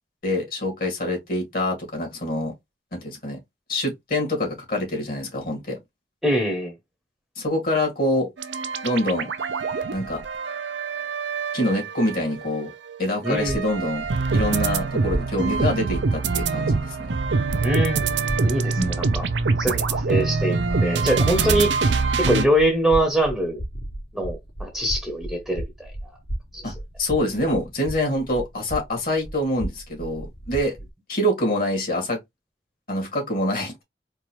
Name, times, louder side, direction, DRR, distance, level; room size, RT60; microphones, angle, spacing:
voice 1, 0.2-2.5 2.9-3.4 3.7-5.8 7.4-8.3 8.8-9.3 9.9-10.2 11.5-12.7 13.0-14.1 14.3-17.0 18.8-19.2 26.6-26.7 27.0-30.7 31.1-32.2 32.9-33.8, left 1 dB, 55° left, 2.1 m, -25 dB
voice 2, 6.2-6.7 13.2-13.6 17.6-19.2 19.6-23.6 24.1-25.9 26.5-26.6, right 1 dB, ahead, 0.9 m, -24 dB
sound 1, 8.4-12.5 12.9-22.5, right 4 dB, 85° right, 0.6 m, -24 dB
sound 2, 13.5-30.9, right 1 dB, 75° left, 2.3 m, -36 dB
4.5 x 2.6 x 3.0 m
head